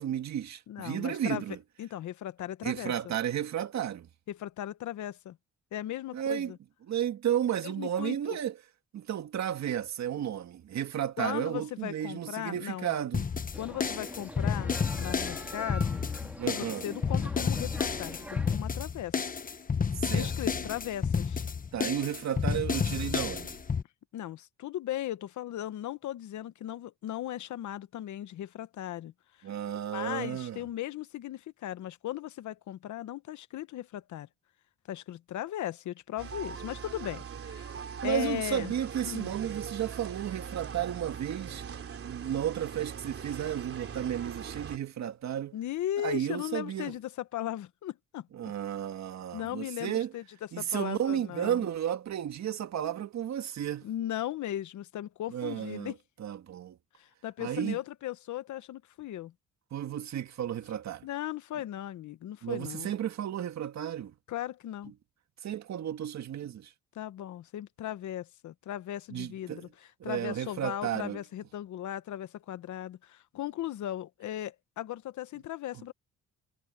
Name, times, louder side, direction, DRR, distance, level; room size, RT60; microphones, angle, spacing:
voice 1, 0.0-1.6 2.6-4.1 6.1-6.5 6.9-8.5 8.9-13.3 16.4-16.9 19.9-20.3 21.7-23.6 29.4-30.6 38.0-41.7 42.0-45.6 46.0-46.9 48.3-50.1 50.5-53.9 55.3-55.9 56.2-56.8 57.4-57.8 59.7-61.1 62.4-64.1 65.4-66.7 69.1-69.7 70.0-71.2 75.7-75.8, right 10 dB, 65° right, 2.0 m, -33 dB
voice 2, 0.7-1.4 1.8-3.1 4.3-5.4 5.7-6.6 7.6-8.4 11.2-12.9 13.6-19.2 20.1-21.4 24.1-29.1 29.9-34.3 34.9-37.7 38.0-38.7 39.0-39.3 45.5-48.3 49.3-50.2 50.6-51.7 53.8-56.0 57.0-59.3 61.0-62.9 64.3-64.9 66.9-69.7 70.0-75.9, left 12 dB, 75° left, 1.1 m, -37 dB
sound 1, 13.1-23.8, left 6 dB, 30° left, 1.0 m, -31 dB
sound 2, 13.5-18.6, right 1 dB, 5° right, 2.6 m, -44 dB
sound 3, 36.2-44.8, right 7 dB, 50° right, 3.1 m, -41 dB
cardioid pair, 90°, 30 cm